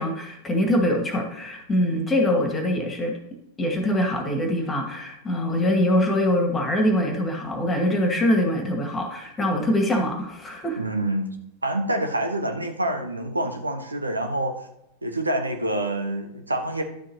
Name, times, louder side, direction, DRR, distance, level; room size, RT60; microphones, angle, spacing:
voice 1, 0.0-3.1 3.6-10.8, left 1 dB, 15° left, 4 dB, 2.0 m, -23 dB
voice 2, 10.8-11.3 11.6-14.6 15.0-16.8, right 1 dB, 80° right, 5 dB, 1.2 m, -27 dB
11.5 x 7.4 x 2.9 m, 0.83 s
figure-of-eight pair, 90°, 0 cm